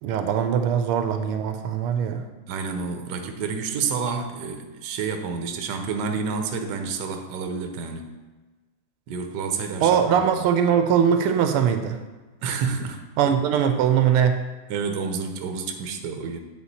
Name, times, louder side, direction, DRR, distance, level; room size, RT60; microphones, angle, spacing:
voice 1, 0.0-2.2 9.8-12.0 13.2-14.4, right 8 dB, 85° right, 7 dB, 1.5 m, -21 dB
voice 2, 2.5-8.1 9.1-10.3 12.4-13.3 14.7-16.4, right 5 dB, 65° right, 5 dB, 1.1 m, -29 dB
8.7 x 4.4 x 4.1 m, 1.2 s
omnidirectional pair, 2.4 m